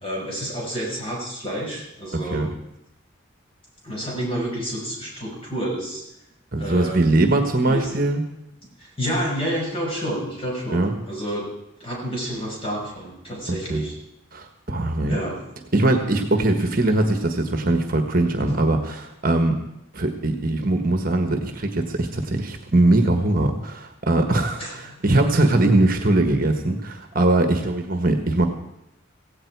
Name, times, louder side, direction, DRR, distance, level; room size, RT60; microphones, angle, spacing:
voice 1, 0.0-2.5 3.8-6.0 6.6-7.1 7.6-7.9 8.8-11.5 11.8-14.0 15.1-15.5 18.5-18.6 24.6-25.0, equal, 25° left, -3 dB, 5.7 m, -29 dB
voice 2, 2.1-2.5 6.5-8.2 10.7-10.9 13.5-13.8 14.3-15.1 15.7-19.6 19.9-28.5, right 2 dB, 45° right, 6 dB, 1.4 m, -21 dB
16.5 x 16.5 x 4.7 m, 0.86 s
head